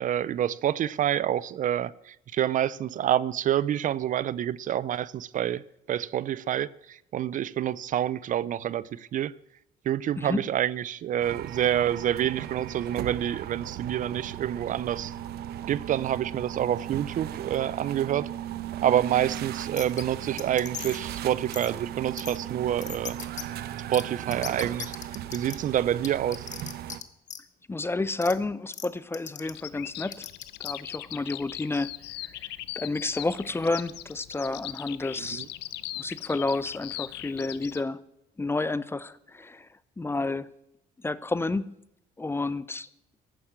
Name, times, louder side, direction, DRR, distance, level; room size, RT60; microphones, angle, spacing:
voice 1, 0.0-5.6 5.9-9.3 9.8-15.1 15.7-18.3 18.8-23.2 23.9-24.9 25.3-26.5 35.2-35.5, right 11 dB, 50° right, 20 dB, 0.5 m, -27 dB
sound 1, 11.2-27.0, right 11 dB, 70° right, 0.9 m, -37 dB
sound 2, 19.8-20.0 20.4-21.0 21.5-21.7 22.2-22.4 22.8-23.4 23.9-24.0 24.3-25.6 26.0-27.0 27.3-27.4 28.2-28.3 28.7-28.9 29.1-29.5 30.1-30.7, left 9 dB, 45° left, 1.2 m, -37 dB
voice 2, 27.7-30.3 30.6-31.9 32.2-32.5 32.8-35.5 36.0-38.0 38.4-39.7 40.0-40.5 41.0-41.7 42.2-42.9, left 3 dB, 15° left, 18 dB, 0.6 m, -30 dB
Bird vocalization bird call bird song, 29.4-37.8, left 15 dB, 80° left, 0.8 m, -40 dB
14.5 x 11.0 x 7.3 m, 0.81 s
cardioid pair, 110°, 17 cm